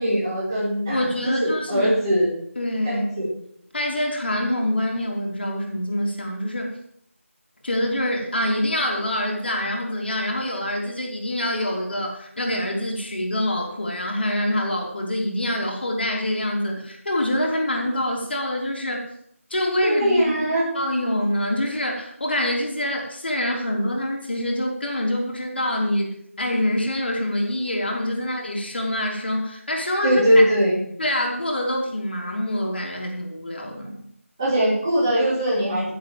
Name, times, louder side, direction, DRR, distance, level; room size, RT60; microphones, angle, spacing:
voice 1, 0.0-2.3 2.8-3.3 19.8-20.7 30.0-30.8 34.4-35.9, equal, 20° right, -8 dB, 5.3 m, -21 dB
voice 2, 0.9-1.9 2.5-3.1 3.7-6.7 7.6-19.0 19.5-30.4 31.0-34.0, left 1 dB, 45° left, 0 dB, 3.4 m, -25 dB
15.0 x 7.5 x 7.8 m, 0.69 s
figure-of-eight pair, 175°, 8 cm